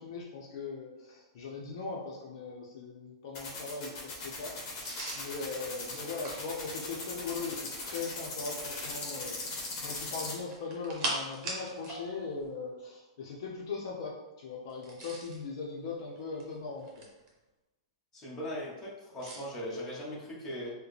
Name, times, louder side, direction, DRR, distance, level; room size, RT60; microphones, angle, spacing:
voice 1, 0.0-17.1, left 4 dB, 60° left, -3 dB, 0.7 m, -40 dB
sound 1, 3.3-10.3, left 3 dB, 40° left, 1.2 m, -39 dB
sound 2, 4.8-7.5 9.9-12.0 12.3-12.5 14.7-15.4 16.2-17.3 19.2-19.5, right 2 dB, 35° right, 1.0 m, -40 dB
voice 2, 18.1-20.7, equal, 20° left, -6 dB, 1.2 m, -39 dB
4.7 x 2.2 x 3.2 m, 1.0 s
hypercardioid pair, 145°, 3 cm